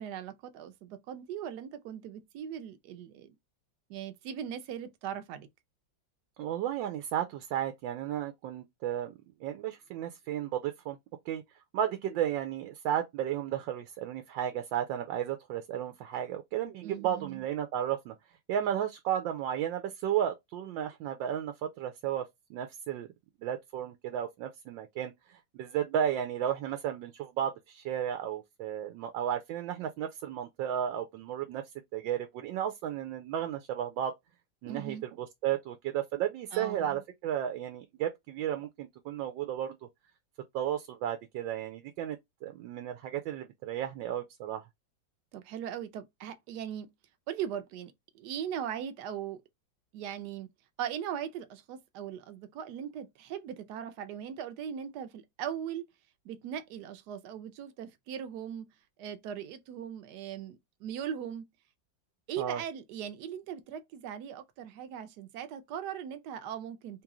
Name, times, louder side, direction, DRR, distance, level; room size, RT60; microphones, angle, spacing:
voice 1, 0.0-3.3 3.9-5.5 16.8-17.4 34.7-35.0 36.5-37.0 45.3-46.9 47.3-49.4 49.9-50.5 50.8-55.8 56.2-58.7 59.0-61.4 62.3-67.0, right 9 dB, 70° right, 1.2 m, -39 dB
voice 2, 6.4-9.1 9.4-11.0 11.3-11.4 11.7-18.1 18.5-23.1 23.4-31.6 31.9-34.1 34.6-39.8 40.5-44.6 62.4-62.6, right 10 dB, 85° right, 1.3 m, -33 dB
3.2 x 3.0 x 3.6 m
omnidirectional pair, 2.0 m